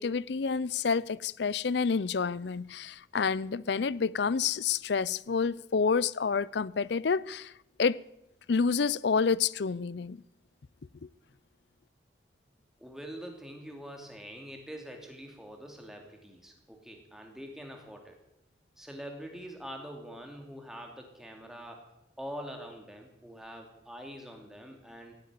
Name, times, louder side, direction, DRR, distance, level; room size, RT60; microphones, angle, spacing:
voice 1, 0.0-7.5 7.8-8.0 8.5-10.2 11.0-11.1, left 5 dB, 60° left, 0.5 m, -28 dB
voice 2, 12.8-18.2 18.8-21.9 22.2-25.1, equal, ahead, 2.6 m, -44 dB
17.0 x 8.9 x 9.6 m
head